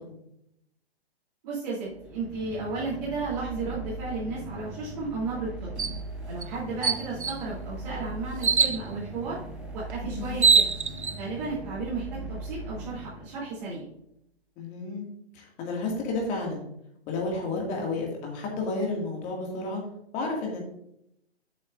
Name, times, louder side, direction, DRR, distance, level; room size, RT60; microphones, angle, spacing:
voice 1, 1.4-5.9 6.3-9.4 9.7-10.7 11.2-13.8, right 3 dB, 40° right, -8 dB, 3.4 m, -34 dB
sound 1, 1.9-13.7, right 2 dB, 5° right, 0.9 m, -39 dB
sound 2, 5.8-6.0 6.4-6.5 6.8-7.4 8.4-8.8 9.9-10.0 10.3-11.1, right 5 dB, 85° right, 0.7 m, -22 dB
voice 2, 10.0-10.4 14.6-15.1 15.3-16.7 17.1-19.8 20.1-20.7, left 3 dB, 20° left, -1 dB, 2.2 m, -31 dB
11.0 x 8.2 x 2.6 m, 0.77 s
figure-of-eight pair, 125°, 33 cm